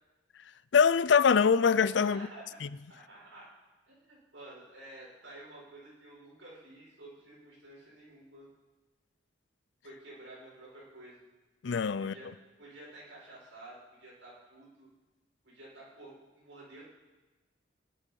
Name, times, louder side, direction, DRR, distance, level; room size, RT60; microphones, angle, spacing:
voice 1, 0.7-2.3 11.6-12.1, left 6 dB, 65° left, 0.5 m, -23 dB
voice 2, 2.1-2.4 2.9-3.5 3.9-8.5 9.8-11.2 12.0-12.3 12.6-14.9 15.4-16.8, right 2 dB, 90° right, 6.8 m, -51 dB
17.5 x 11.5 x 5.5 m
head